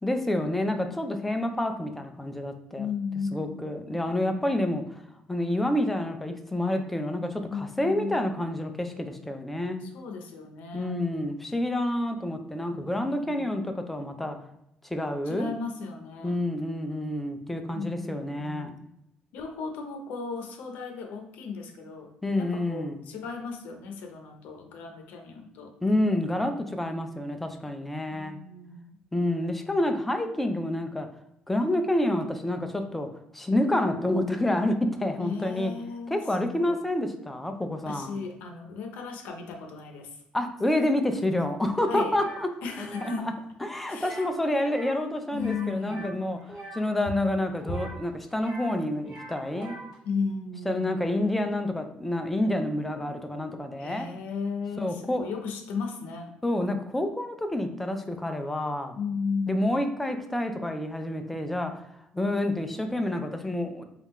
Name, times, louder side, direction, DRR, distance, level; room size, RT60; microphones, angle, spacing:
voice 1, 0.0-2.9 3.3-5.0 5.3-9.9 10.7-14.4 14.8-15.5 16.2-18.7 22.2-23.0 25.8-28.4 29.1-31.1 31.5-33.1 33.3-35.7 36.1-38.2 40.3-42.5 42.8-43.1 43.6-49.8 50.7-54.1 54.8-55.3 56.4-59.0 59.5-61.8 62.1-63.8, left 1 dB, 5° left, 6 dB, 0.3 m, -28 dB
voice 2, 2.7-3.8 7.5-8.4 9.8-11.0 12.7-13.4 15.3-16.4 17.7-18.9 19.3-22.1 22.4-25.7 28.1-28.8 35.2-36.8 37.9-40.1 41.9-42.2 42.6-43.3 43.9-44.2 45.3-46.1 50.0-51.0 53.8-56.3 58.9-59.8, left 5 dB, 80° left, 3 dB, 0.7 m, -35 dB
sound 1, 42.1-42.5 42.8-43.2 44.0-44.4 44.6-45.0 45.3-46.8 47.6-48.7 49.0-49.9, right 2 dB, 20° right, 1.3 m, -43 dB
3.6 x 2.4 x 4.1 m, 0.80 s
cardioid pair, 180°, 3 cm